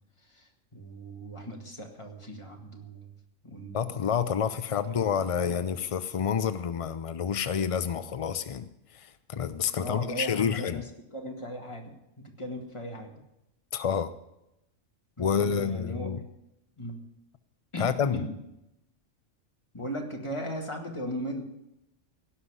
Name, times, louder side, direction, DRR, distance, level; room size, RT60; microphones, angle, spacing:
voice 1, 0.2-3.1 3.4-4.0 5.1-5.6 9.7-10.8 11.1-13.2 15.2-16.2 16.8-17.0 17.7-17.9 18.1-18.3 19.7-21.4, equal, 25° left, 1 dB, 2.0 m, -38 dB
voice 2, 3.7-10.8 13.7-14.1 15.2-16.2 17.8-18.2, left 7 dB, 65° left, 12 dB, 0.3 m, -29 dB
17.0 x 5.7 x 9.7 m, 0.88 s
omnidirectional pair, 1.3 m